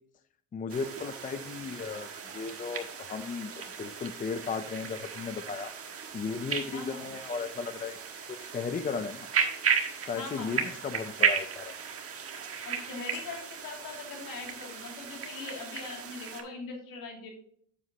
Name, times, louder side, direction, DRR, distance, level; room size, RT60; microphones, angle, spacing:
voice 1, 0.5-5.7 6.1-9.3 10.1-11.7, left 5 dB, 25° left, 11 dB, 0.5 m, -36 dB
sound 1, 0.7-16.4, right 7 dB, 40° right, 1.4 m, -35 dB
voice 2, 6.7-7.1 10.1-10.7 12.6-17.3, left 4 dB, 70° left, 1 dB, 2.6 m, -41 dB
8.2 x 7.1 x 2.8 m, 0.63 s
cardioid pair, 95°, 34 cm